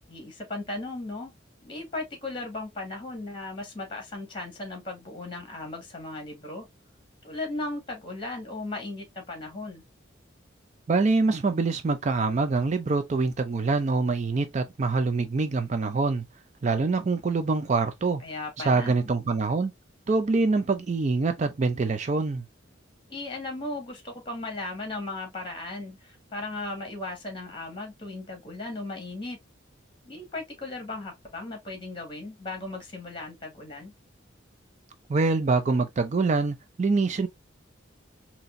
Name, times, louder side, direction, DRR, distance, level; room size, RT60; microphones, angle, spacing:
voice 1, 0.1-1.3 1.6-6.7 7.2-9.8 18.2-18.9 23.1-29.4 30.0-33.9, left 2 dB, 25° left, 1.7 m, -36 dB
voice 2, 10.9-16.2 16.6-18.2 18.6-19.7 20.1-22.4 35.1-37.3, right 3 dB, 35° right, 0.4 m, -25 dB
4.1 x 2.9 x 2.5 m
head